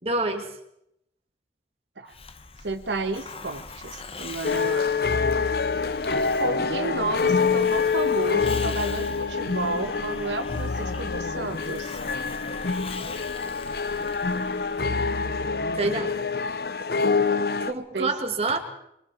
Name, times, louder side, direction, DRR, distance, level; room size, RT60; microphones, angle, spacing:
voice 1, 0.0-0.5 15.8-16.1 17.7-18.6, right 3 dB, 35° right, 4 dB, 2.4 m, -26 dB
Hiss, 2.1-15.6, left 4 dB, 30° left, 1.1 m, -42 dB
voice 2, 2.6-4.9 6.4-12.0 17.9-18.1, right 3 dB, 85° right, 7 dB, 1.3 m, -32 dB
sound 1, 4.4-17.7, left 4 dB, 60° left, 0.7 m, -26 dB
24.5 x 23.5 x 4.5 m, 0.78 s
head